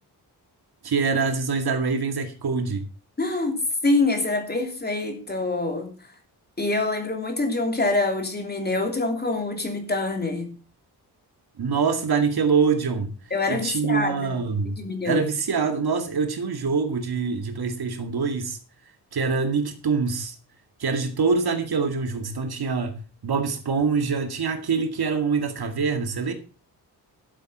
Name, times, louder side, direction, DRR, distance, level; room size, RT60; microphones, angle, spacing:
voice 1, 0.8-2.9 11.6-13.1 13.5-14.8 15.1-18.6 19.1-20.4 20.8-26.3, right 5 dB, 65° right, 2.3 m, -25 dB
voice 2, 3.2-6.0 6.6-10.5 13.3-14.4 14.8-15.2, left 2 dB, 25° left, 2.9 m, -25 dB
12.5 x 8.0 x 5.6 m
wide cardioid pair, 130°, 40 cm